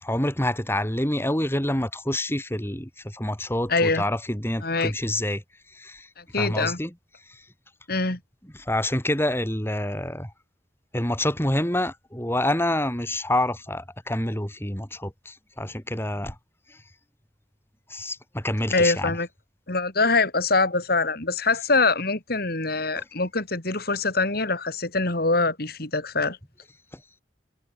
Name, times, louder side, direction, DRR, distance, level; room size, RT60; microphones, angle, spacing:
voice 1, 0.0-5.4 5.7-6.1 6.3-6.9 7.3-7.4 8.5-10.3 10.9-16.3 16.7-16.8 17.9-19.1 23.0-23.1, left 1 dB, 15° left, 4.8 m, -27 dB
voice 2, 3.7-4.0 4.6-4.9 6.2-6.8 7.9-8.2 18.7-19.3 19.7-26.4, left 3 dB, 55° left, 3.8 m, -24 dB
head